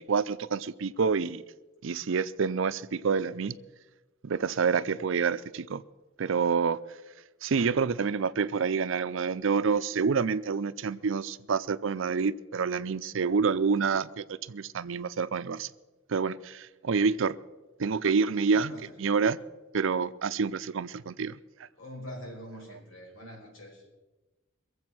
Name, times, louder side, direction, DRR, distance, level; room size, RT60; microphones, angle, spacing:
voice 1, 0.0-1.4 1.8-3.6 4.2-5.8 6.2-6.8 7.4-15.7 16.1-17.3 17.8-18.7 19.0-19.4 19.7-21.4, right 5 dB, 70° right, 0.5 m, -28 dB
voice 2, 18.5-19.0 21.8-23.9, equal, 85° left, 5.6 m, -44 dB
22.5 x 7.8 x 6.1 m
head